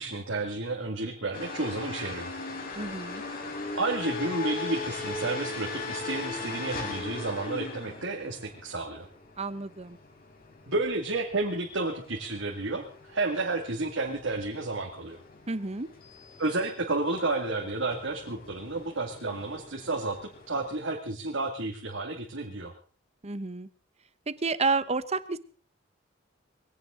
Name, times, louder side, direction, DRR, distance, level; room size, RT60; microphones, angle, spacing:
voice 1, 0.0-2.3 3.7-9.1 10.7-15.2 16.4-22.7, right 2 dB, 65° right, 1 dB, 2.3 m, -31 dB
sound 1, 1.3-20.8, left 3 dB, 45° left, 4.4 m, -40 dB
voice 2, 2.8-3.2 9.4-10.0 15.5-15.9 23.2-23.7 24.3-25.4, right 4 dB, 30° right, 15 dB, 0.9 m, -30 dB
21.0 x 17.0 x 3.8 m, 0.41 s
head